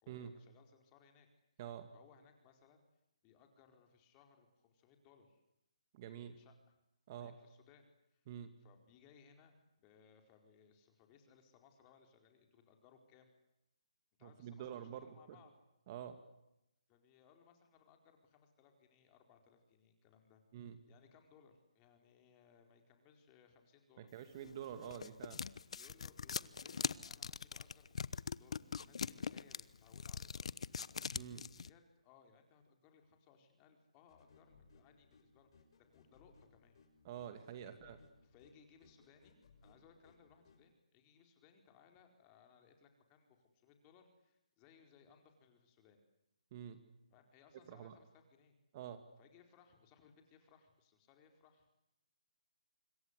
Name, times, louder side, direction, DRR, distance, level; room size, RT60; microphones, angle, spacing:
voice 1, 0.0-1.3 1.9-2.8 3.2-5.4 6.1-6.8 7.1-8.3 8.6-13.3 14.2-15.5 16.9-20.4 20.9-24.1 24.8-24.9 25.7-30.7 31.6-36.8 37.6-37.9 38.2-46.0 47.1-48.6 49.2-51.7, left 6 dB, 20° left, 5 dB, 4.5 m, -66 dB
voice 2, 1.6-1.9 5.9-6.4 7.1-7.3 8.3-8.5 14.2-15.4 15.9-16.2 20.5-20.8 24.0-25.4 31.1-31.5 37.0-38.0 46.5-46.8 47.7-47.9 48.7-49.0, right 9 dB, 35° right, 9 dB, 2.3 m, -47 dB
sound 1, 24.4-31.7, left 6 dB, 65° left, 1.0 m, -42 dB
sound 2, 34.1-40.6, left 4 dB, 45° left, 6.6 m, -67 dB
26.0 x 26.0 x 8.3 m, 0.86 s
hypercardioid pair, 155°, 4 cm